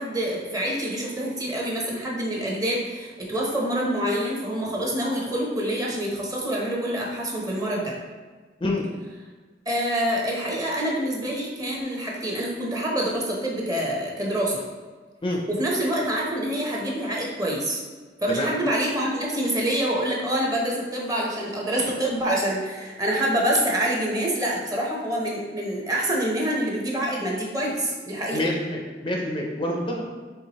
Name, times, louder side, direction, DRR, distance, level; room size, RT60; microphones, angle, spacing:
voice 1, 0.0-7.9 9.7-14.6 15.6-17.8 18.2-28.4, right 1 dB, 20° right, -3 dB, 0.8 m, -26 dB
voice 2, 28.3-30.1, left 1 dB, 30° left, -1 dB, 0.4 m, -27 dB
4.5 x 3.4 x 2.9 m, 1.4 s
head